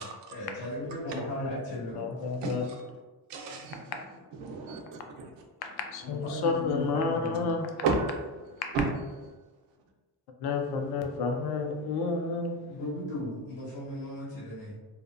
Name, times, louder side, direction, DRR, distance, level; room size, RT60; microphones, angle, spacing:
voice 1, 0.0-2.1 2.4-2.5 6.0-7.5 12.7-14.8, left 1 dB, 80° left, -7 dB, 1.5 m, -37 dB
voice 2, 1.2-1.5 1.9-2.7 3.7-4.0 5.6-7.7 8.6-8.7 10.4-12.6, left 4 dB, 65° left, 4 dB, 0.5 m, -31 dB
voice 3, 2.4-2.8 3.3-4.0 4.4-5.3 7.8-8.1 8.7-8.9, right 4 dB, 90° right, 2 dB, 0.6 m, -32 dB
2.8 x 2.1 x 2.4 m, 1.3 s
cardioid pair, 100°, 42 cm